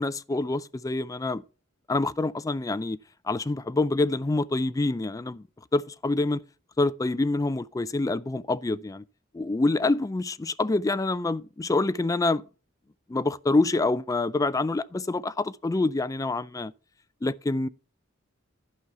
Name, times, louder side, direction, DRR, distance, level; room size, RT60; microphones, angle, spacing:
voice 1, 0.0-1.4 1.9-3.0 3.2-5.4 5.7-6.4 6.8-9.0 9.3-12.4 13.1-16.7 17.2-17.7, left 2 dB, 15° left, 0.3 m, -26 dB
11.5 x 5.5 x 4.5 m
head